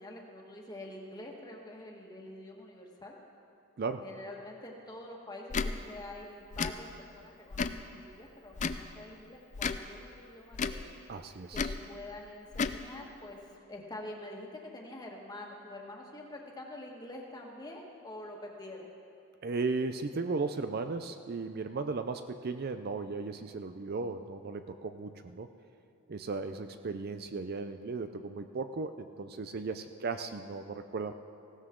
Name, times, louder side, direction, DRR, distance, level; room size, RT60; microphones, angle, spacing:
voice 1, 0.0-3.1 4.0-10.8 11.5-14.5 14.7-18.9, left 1 dB, 15° left, -1 dB, 1.6 m, -46 dB
Tick / Tick-tock, 5.5-5.7 6.5-6.7 7.5-7.8 8.5-8.8 9.5-9.8 10.5-10.8 11.5-11.8 12.5-12.8, left 5 dB, 35° left, 0.4 m, -32 dB
voice 2, 11.1-11.7 19.4-25.5 26.1-31.1, right 4 dB, 45° right, 9 dB, 0.4 m, -36 dB
18.5 x 16.5 x 3.8 m, 2.6 s
head